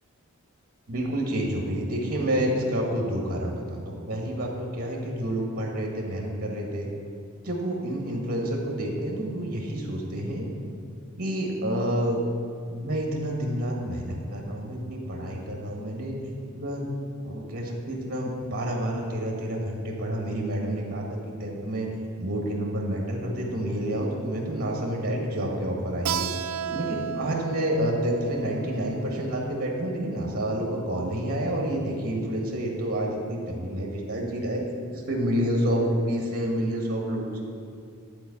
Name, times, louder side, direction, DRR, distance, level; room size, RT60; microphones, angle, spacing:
voice 1, 0.9-6.9 7.4-10.5 11.2-12.2 12.7-16.1 16.5-16.9 17.2-26.3 26.7-34.6 34.9-37.5, right 1 dB, 45° right, -1 dB, 1.6 m, -29 dB
Keyboard (musical), 26.1-31.3, right 8 dB, 85° right, 0.4 m, -35 dB
11.5 x 4.6 x 8.3 m, 2.3 s
head